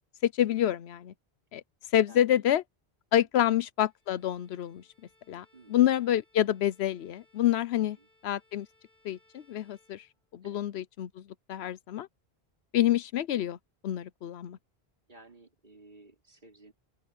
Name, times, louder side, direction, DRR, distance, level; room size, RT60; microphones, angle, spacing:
voice 1, 0.2-1.1 1.5-1.6 1.9-2.6 3.1-4.8 5.3-8.0 8.2-8.7 9.0-10.0 10.3-12.1 12.7-13.6 13.8-14.6, left 11 dB, 90° left, 0.9 m, -27 dB
voice 2, 2.1-2.4 5.5-5.8 8.0-8.1 10.4-10.6 15.1-16.7, right 2 dB, 50° right, 3.8 m, -55 dB
Bowed string instrument, 3.8-10.6, left 2 dB, 55° left, 6.9 m, -67 dB
open air
omnidirectional pair, 1.0 m